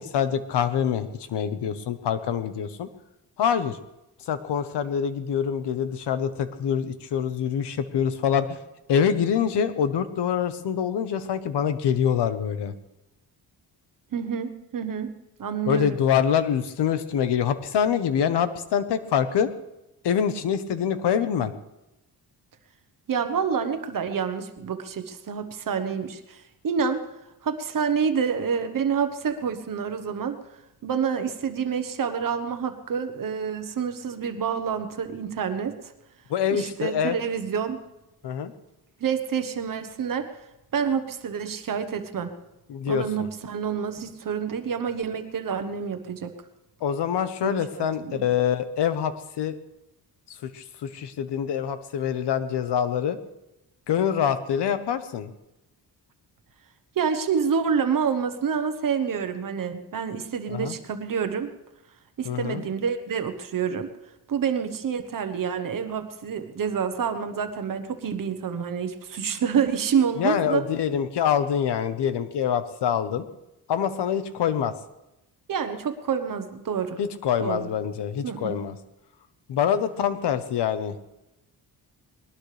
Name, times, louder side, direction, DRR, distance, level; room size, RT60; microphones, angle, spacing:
voice 1, 0.0-2.9 3.4-3.8 4.3-8.6 8.9-12.7 15.7-19.5 20.0-21.5 36.3-37.2 38.2-38.5 42.7-43.3 46.8-49.6 50.4-53.2 53.9-55.3 60.5-60.8 62.2-62.6 70.2-73.3 73.7-74.7 77.0-78.7 79.5-80.9, left 8 dB, 85° left, 11 dB, 1.2 m, -25 dB
voice 2, 14.1-15.1 15.4-16.0 23.1-27.0 27.4-30.4 30.8-35.9 36.5-37.8 39.0-40.3 40.7-42.3 42.9-46.3 47.4-48.2 57.0-61.5 62.2-63.9 64.3-70.6 75.5-77.0 77.4-77.7 78.2-78.5, right 7 dB, 55° right, 8 dB, 1.2 m, -28 dB
21.0 x 18.5 x 3.4 m, 0.93 s
wide cardioid pair, 135°, 40 cm